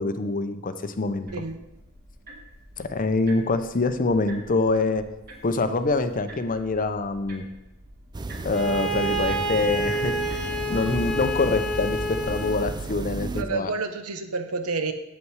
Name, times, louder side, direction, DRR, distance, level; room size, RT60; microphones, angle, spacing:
voice 1, 0.0-1.3 2.8-5.0 5.4-7.4 8.4-10.2 10.7-13.7, left 3 dB, 40° left, 10 dB, 0.6 m, -25 dB
sound 1, 1.3-11.2, right 1 dB, 50° right, 2.4 m, -48 dB
voice 2, 1.3-1.6 13.3-14.9, right 4 dB, 80° right, 8 dB, 0.9 m, -29 dB
sound 2, 8.1-13.4, right 3 dB, 20° right, 0.4 m, -33 dB
Bowed string instrument, 8.5-12.7, right 1 dB, 5° left, 0.9 m, -29 dB
8.4 x 7.7 x 4.7 m, 0.94 s
head